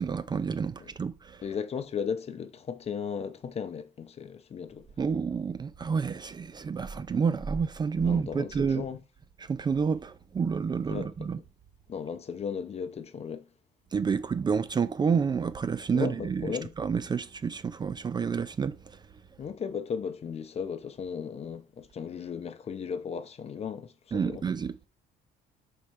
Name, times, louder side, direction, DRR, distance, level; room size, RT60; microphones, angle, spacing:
voice 1, 0.0-1.4 5.0-8.8 9.5-11.4 13.9-18.8 24.1-24.9, right 6 dB, 25° right, 0.4 m, -29 dB
voice 2, 1.4-4.9 8.0-9.0 10.9-11.1 11.9-13.5 15.9-16.7 19.4-24.4, left 6 dB, 40° left, 0.8 m, -36 dB
4.9 x 4.2 x 4.5 m
cardioid pair, 110°, 17 cm